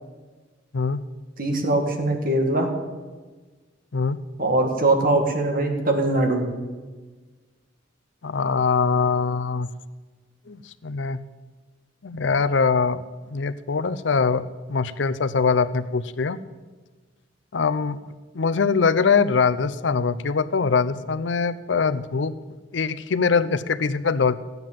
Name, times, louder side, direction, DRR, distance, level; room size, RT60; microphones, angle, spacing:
voice 1, 1.4-2.7 4.4-6.4, right 2 dB, 50° right, 3 dB, 2.1 m, -21 dB
voice 2, 8.2-9.7 10.5-11.2 12.0-13.0 13.3-16.4 17.5-18.0 18.3-22.3 22.7-24.4, left 5 dB, 70° left, 14 dB, 0.6 m, -22 dB
14.5 x 9.4 x 7.5 m, 1.3 s
head